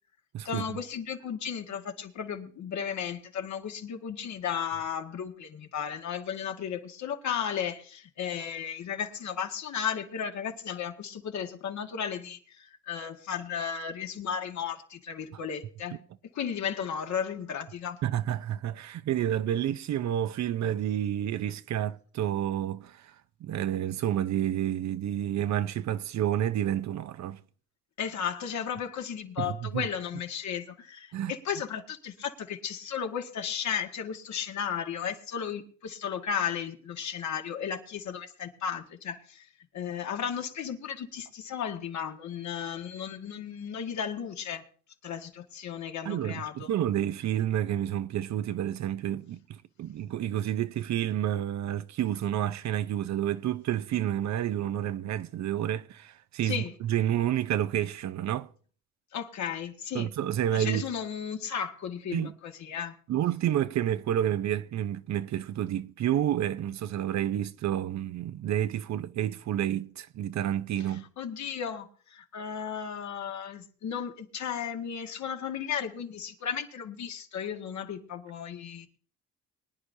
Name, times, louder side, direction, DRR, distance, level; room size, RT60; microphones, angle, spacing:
voice 1, 0.4-16.0 16.3-18.0 28.0-39.5 39.7-44.6 45.0-46.7 56.4-56.7 59.1-60.1 60.5-63.0 70.9-78.9, left 8 dB, 65° left, 1.8 m, -34 dB
voice 2, 18.0-23.1 23.4-27.4 29.4-29.9 31.1-31.3 46.1-58.5 59.9-60.8 62.1-62.3 63.1-71.0, right 11 dB, 65° right, 0.7 m, -29 dB
23.0 x 10.0 x 2.7 m
cardioid pair, 90°, 30 cm